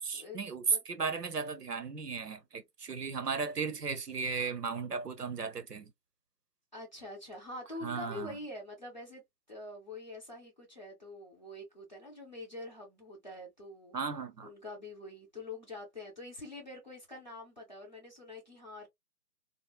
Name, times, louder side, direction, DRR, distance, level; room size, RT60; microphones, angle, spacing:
voice 1, 0.0-5.9 7.8-8.4 13.9-14.5, right 5 dB, 70° right, 0.7 m, -35 dB
voice 2, 6.7-9.2 9.5-14.0 14.4-18.9, left 2 dB, 25° left, 0.9 m, -45 dB
3.1 x 2.0 x 2.2 m
figure-of-eight pair, 155°, 49 cm